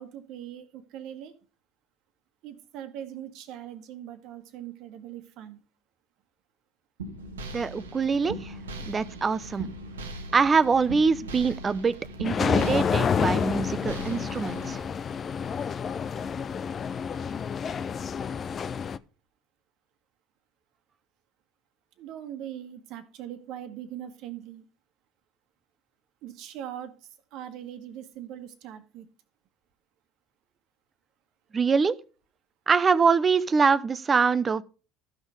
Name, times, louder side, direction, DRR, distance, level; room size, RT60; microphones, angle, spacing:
voice 1, 0.0-1.3 2.4-5.6 22.0-24.7 26.2-29.1, right 10 dB, 60° right, 1.5 m, -41 dB
sound 1, 7.0-14.8, right 1 dB, 85° right, 1.2 m, -39 dB
voice 2, 7.5-8.5 8.9-9.7 10.3-11.9 12.2-14.8 31.5-32.0 32.7-34.6, right 5 dB, 30° right, 0.7 m, -24 dB
sound 2, 12.2-19.0, left 7 dB, 40° left, 0.6 m, -29 dB
13.0 x 6.3 x 5.0 m
hypercardioid pair, 65°, 0 cm